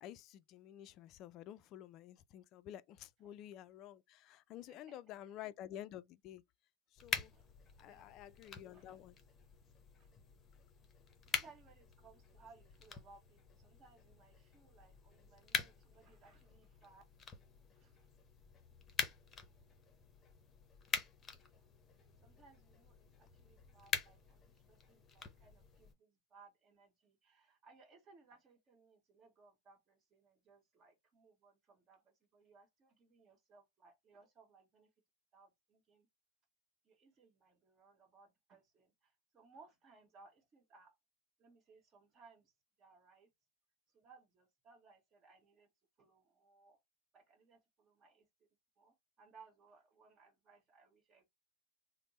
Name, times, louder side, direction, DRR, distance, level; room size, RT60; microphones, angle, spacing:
voice 1, 0.0-6.4 6.9-7.3 7.8-9.2, left 12 dB, 45° left, 0.3 m, -51 dB
voice 2, 4.7-5.0 7.3-7.5 7.8-9.0 10.0-10.1 11.3-17.0 17.7-18.0 21.5-21.7 22.2-34.9 35.3-36.1 36.8-40.9 41.4-42.5 42.8-43.3 43.9-45.7 46.0-46.8 47.1-48.3 48.8-51.3, right 4 dB, 30° right, 1.2 m, -64 dB
sound 1, 7.0-25.9, left 6 dB, 25° left, 0.7 m, -46 dB
3.3 x 2.0 x 4.0 m
hypercardioid pair, 110°, 0 cm